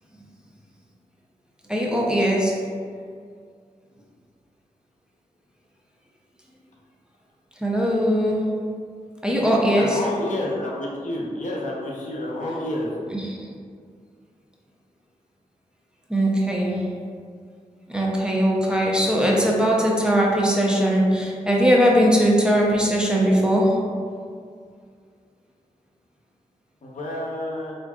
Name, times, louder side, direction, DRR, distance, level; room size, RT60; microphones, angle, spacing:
voice 1, 1.7-2.6 7.6-8.5 9.2-10.0 13.1-13.4 16.1-16.8 17.9-23.8, equal, 5° right, -3 dB, 0.7 m, -20 dB
voice 2, 9.8-12.9 26.8-27.7, left 1 dB, 65° left, -3 dB, 0.7 m, -29 dB
4.6 x 2.5 x 2.3 m, 2.1 s
cardioid pair, 55°, 14 cm